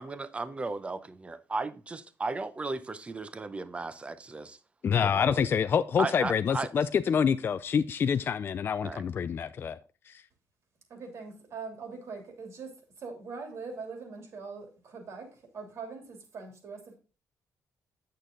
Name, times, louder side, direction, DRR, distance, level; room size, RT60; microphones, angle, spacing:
voice 1, 0.0-4.6 5.0-5.5 6.0-6.7 8.8-9.0, right 3 dB, 20° right, 13 dB, 0.7 m, -35 dB
voice 2, 4.8-9.8 10.1-10.2, left 7 dB, 40° left, 11 dB, 0.3 m, -27 dB
voice 3, 10.9-12.7 13.0-17.0, right 4 dB, 55° right, 3 dB, 3.0 m, -42 dB
8.7 x 6.7 x 3.8 m, 0.34 s
cardioid pair, 130°, 6 cm